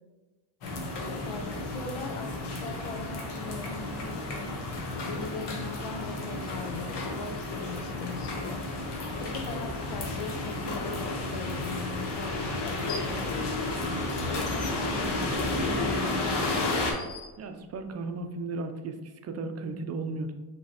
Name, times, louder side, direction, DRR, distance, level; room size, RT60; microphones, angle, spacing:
sound 1, 0.6-16.9, left 2 dB, 60° left, 1.1 m, -32 dB
voice 1, 1.2-4.5 5.1-8.6 9.2-13.7 14.3-16.7, left 3 dB, 80° left, 3 dB, 1.0 m, -40 dB
sound 2, 12.9-13.2 13.6-18.0, left 4 dB, 40° left, 0.8 m, -46 dB
voice 2, 17.4-20.3, right 3 dB, 35° right, 6 dB, 0.5 m, -35 dB
5.4 x 3.1 x 2.9 m, 1.2 s
cardioid pair, 100°, 47 cm